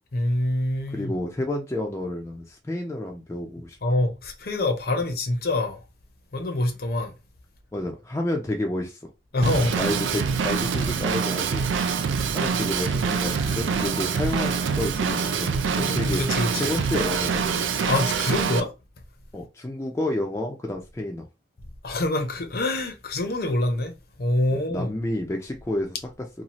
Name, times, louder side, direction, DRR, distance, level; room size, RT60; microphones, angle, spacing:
voice 1, 0.1-1.2 3.8-5.8 6.3-7.1 9.3-9.8 15.8-16.8 17.9-18.7 21.8-24.9, left 1 dB, 50° left, 0.6 m, -25 dB
voice 2, 0.9-3.8 7.7-9.0 9.8-11.7 12.3-16.2 16.6-17.7 19.3-21.2 24.7-26.0, left 1 dB, 15° left, 0.3 m, -30 dB
Drum kit / Drum, 9.4-18.6, right 6 dB, 80° right, 0.4 m, -25 dB
2.7 x 2.3 x 2.9 m
head